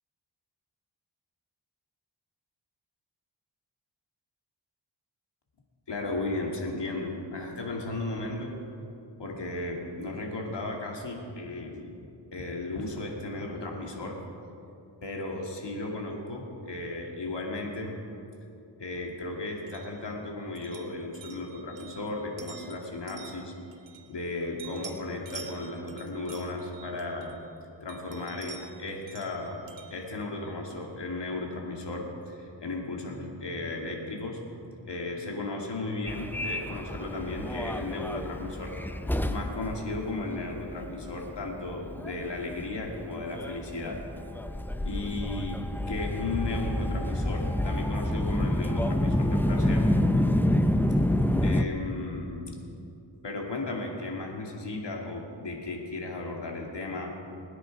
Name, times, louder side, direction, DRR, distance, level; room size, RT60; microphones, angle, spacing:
voice 1, 5.9-8.5 9.2-12.0 12.3-14.2 15.0-18.0 18.8-23.5 24.1-27.4 27.8-29.6 29.9-34.4 34.8-44.0 44.8-49.9 51.4-52.6 53.2-57.2, left 2 dB, 70° left, 0 dB, 2.4 m, -35 dB
sound 1, 19.7-24.3 24.6-27.5 27.9-30.9, right 6 dB, 85° right, 1.3 m, -49 dB
Subway metro underground, 36.1-51.6, left 1 dB, 5° left, 0.5 m, -28 dB
21.0 x 9.9 x 4.7 m, 2.8 s
wide cardioid pair, 80°, 44 cm